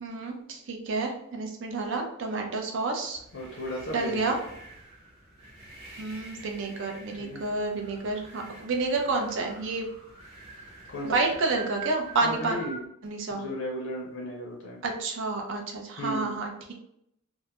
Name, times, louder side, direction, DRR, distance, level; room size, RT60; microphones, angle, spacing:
voice 1, 0.0-3.2 3.9-4.4 6.0-9.9 11.0-12.6 13.0-13.4 14.8-16.7, right 3 dB, 60° right, 2 dB, 0.5 m, -29 dB
sound 1, 3.1-12.9, right 3 dB, 20° right, 0.7 m, -46 dB
voice 2, 3.3-4.4 7.2-7.4 10.9-11.2 12.2-12.8 13.3-14.8 16.0-16.4, equal, 60° left, -2 dB, 0.5 m, -35 dB
2.2 x 2.0 x 2.8 m, 0.74 s
head